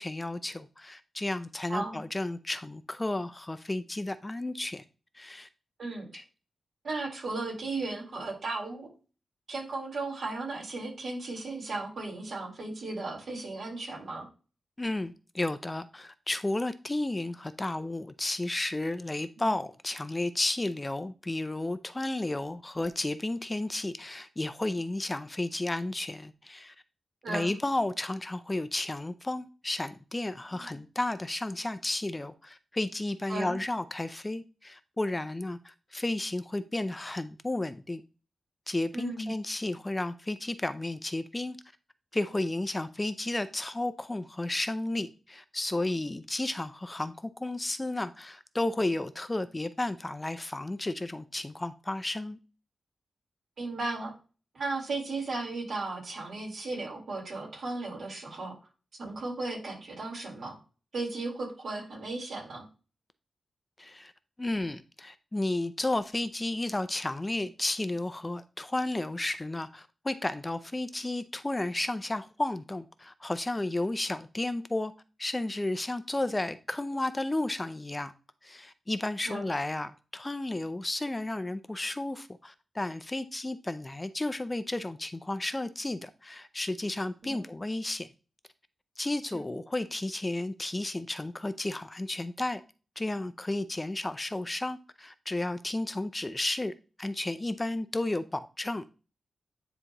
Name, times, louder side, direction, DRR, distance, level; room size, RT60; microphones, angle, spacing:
voice 1, 0.0-4.8 5.1-5.5 6.1-6.2 14.8-26.7 27.3-38.0 38.7-41.6 42.1-52.4 63.8-64.1 64.4-74.9 75.2-78.1 78.4-88.1 89.0-92.6 93.0-96.7 97.0-98.8, left 2 dB, 20° left, 0.5 m, -33 dB
voice 2, 5.8-6.2 6.8-8.9 9.5-14.3 19.4-19.5 27.2-27.5 30.6-30.8 33.3-33.6 38.9-39.3 53.6-54.1 54.5-58.5 59.0-60.6 60.9-62.6 79.3-79.5 87.2-87.4, right 3 dB, 65° right, 3.9 m, -35 dB
9.9 x 3.9 x 3.0 m
wide cardioid pair, 90°, 0 cm